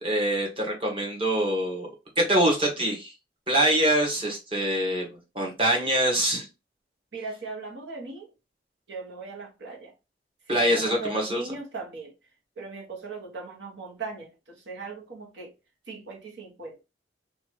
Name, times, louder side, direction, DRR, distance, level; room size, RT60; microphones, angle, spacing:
voice 1, 0.0-1.9 2.2-3.1 3.5-6.5 10.5-11.4, right 1 dB, 30° right, 1.0 m, -24 dB
voice 2, 7.1-8.3 8.9-9.9 10.5-12.1 12.6-15.5 15.9-16.8, right 3 dB, 80° right, 1.0 m, -38 dB
2.9 x 2.4 x 3.0 m
head